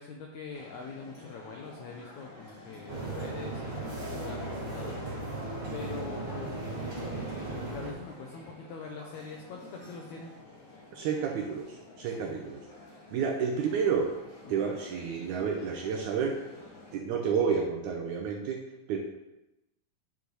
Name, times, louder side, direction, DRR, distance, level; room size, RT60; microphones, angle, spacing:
voice 1, 0.0-5.0 5.7-10.3 12.2-12.4 14.4-14.7, left 5 dB, 90° left, 0 dB, 1.6 m, -44 dB
sound 1, 0.5-17.0, left 2 dB, 35° left, 2.1 m, -51 dB
sound 2, 2.9-7.9, right 2 dB, 40° right, 2.2 m, -36 dB
voice 2, 10.9-12.6 13.1-14.1 14.5-16.4 16.9-19.0, right 6 dB, 80° right, 0 dB, 1.8 m, -30 dB
9.8 x 5.3 x 3.1 m, 0.96 s
omnidirectional pair, 4.1 m